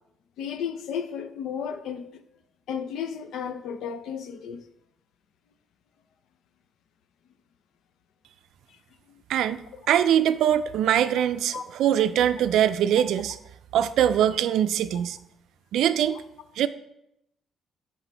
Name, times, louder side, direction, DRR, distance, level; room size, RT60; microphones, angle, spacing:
voice 1, 0.4-2.2 2.7-4.6 8.7-8.8 11.5-11.6, left 7 dB, 80° left, 0.6 m, -33 dB
voice 2, 9.3-9.6 9.9-13.4 13.7-15.2 15.7-16.1 16.6-16.7, right 10 dB, 80° right, 0.4 m, -22 dB
10.5 x 4.4 x 3.4 m
cardioid pair, 90°, 0 cm